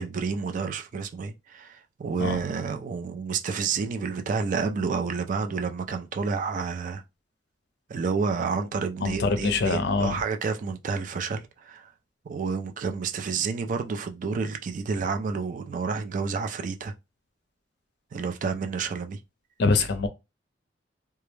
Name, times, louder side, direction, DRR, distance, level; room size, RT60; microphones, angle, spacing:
voice 1, 0.0-7.0 7.9-11.9 12.3-16.9 18.1-19.2, right 5 dB, 45° right, 0.3 m, -30 dB
voice 2, 9.0-10.2 19.6-20.1, left 3 dB, 65° left, 0.5 m, -24 dB
2.2 x 2.0 x 3.0 m
head